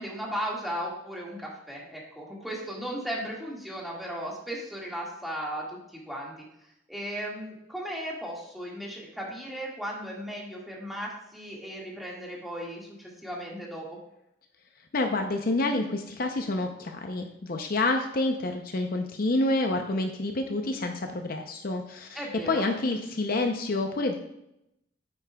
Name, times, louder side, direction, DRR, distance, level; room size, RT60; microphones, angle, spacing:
voice 1, 0.0-6.3 6.9-14.0 22.1-22.7, equal, ahead, -4 dB, 1.9 m, -36 dB
voice 2, 14.9-24.2, left 2 dB, 55° left, 4 dB, 0.6 m, -28 dB
9.5 x 8.4 x 2.3 m, 0.83 s
head